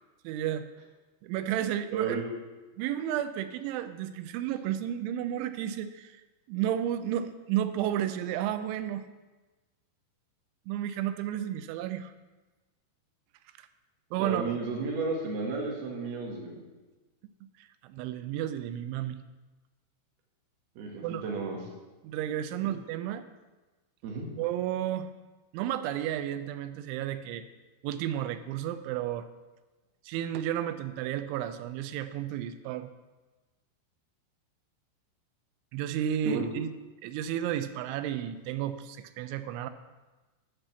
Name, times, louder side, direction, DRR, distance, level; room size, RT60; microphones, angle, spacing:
voice 1, 0.2-0.7 1.2-2.2 2.8-6.2 6.5-9.1 10.7-12.1 14.1-14.6 17.4-19.2 21.0-21.2 22.0-23.2 24.4-25.1 25.5-27.4 27.8-29.3 30.1-32.9 35.7-36.7 37.0-39.7, right 11 dB, 85° right, 11 dB, 2.8 m, -32 dB
voice 2, 1.9-2.2 14.2-16.6 20.8-21.6 22.6-22.7 24.0-24.3 36.2-36.4, right 4 dB, 60° right, -1 dB, 3.4 m, -33 dB
10.0 x 5.8 x 8.0 m, 1.2 s
omnidirectional pair, 5.7 m